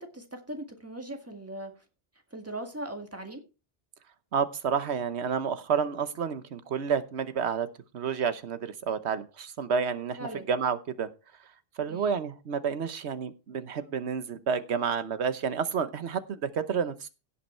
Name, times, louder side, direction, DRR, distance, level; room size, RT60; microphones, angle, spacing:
voice 1, 0.0-1.8 2.3-3.4 10.2-10.5 11.9-12.2, right 1 dB, 15° right, 1.8 m, -39 dB
voice 2, 4.3-7.7 7.9-10.2 10.5-11.1 11.8-17.1, right 6 dB, 85° right, 1.2 m, -30 dB
16.5 x 5.8 x 4.4 m
omnidirectional pair, 1.1 m